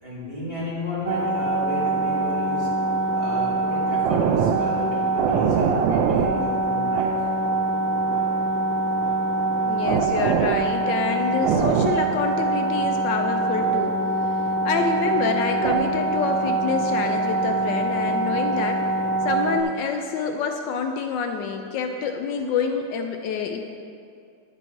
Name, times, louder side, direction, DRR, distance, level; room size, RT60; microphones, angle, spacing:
voice 1, 0.0-2.7 3.1-7.1, left 1 dB, 25° right, -9 dB, 2.4 m, -33 dB
sound 1, 1.1-19.6, right 3 dB, 80° right, 1.3 m, -23 dB
voice 2, 9.6-14.0 14.6-18.9 19.2-23.6, left 6 dB, 80° left, 5 dB, 1.2 m, -27 dB
11.0 x 5.3 x 4.5 m, 2.4 s
omnidirectional pair, 2.0 m